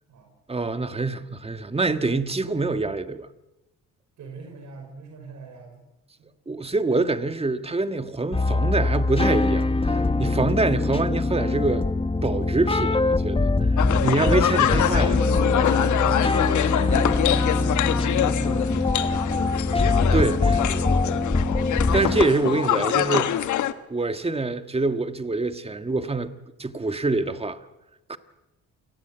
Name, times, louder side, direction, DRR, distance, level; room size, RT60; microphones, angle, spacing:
voice 1, 0.5-3.3 6.5-11.8 12.2-15.2 20.1-20.6 21.9-23.4 23.9-26.3 26.6-27.6 28.1-28.2, right 3 dB, 20° right, 1.6 m, -25 dB
voice 2, 4.2-5.8 6.2-6.3 14.5-19.3 20.1-21.5, right 4 dB, 70° right, 5.7 m, -42 dB
sound 1, 8.3-22.2, left 3 dB, 20° left, 1.4 m, -23 dB
sound 2, 13.8-23.7, left 11 dB, 75° left, 1.3 m, -25 dB
28.0 x 19.0 x 8.0 m
cardioid pair, 90°, 30 cm